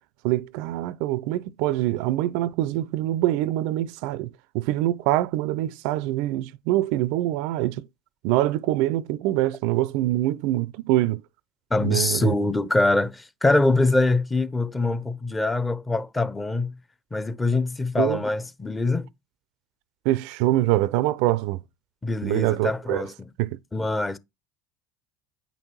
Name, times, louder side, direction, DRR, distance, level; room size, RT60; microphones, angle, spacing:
voice 1, 0.2-4.3 4.5-7.9 8.2-11.2 11.8-12.3 18.0-18.2 20.1-21.6 22.2-23.0 23.4-23.5, right 15 dB, 60° right, 0.4 m, -24 dB
voice 2, 11.7-16.7 17.1-19.1 22.0-23.3 23.7-24.2, left 2 dB, 15° left, 0.7 m, -24 dB
9.0 x 5.3 x 2.9 m
hypercardioid pair, 75°, 0 cm